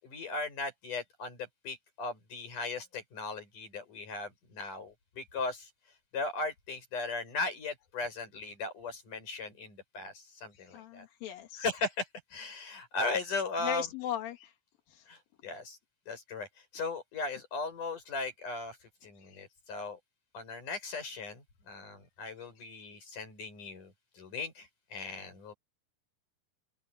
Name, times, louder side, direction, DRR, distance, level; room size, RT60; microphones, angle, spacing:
voice 1, 0.0-5.7 6.1-11.0 11.6-12.1 12.3-13.9 15.1-15.8 16.1-16.5 16.7-18.8 19.0-20.0 20.3-25.5, left 3 dB, 40° left, 8.3 m, -37 dB
voice 2, 10.5-11.7 13.6-14.5 14.9-15.1 19.2-19.4 22.6-22.7, left 9 dB, 55° left, 3.1 m, -38 dB
omnidirectional pair, 5.6 m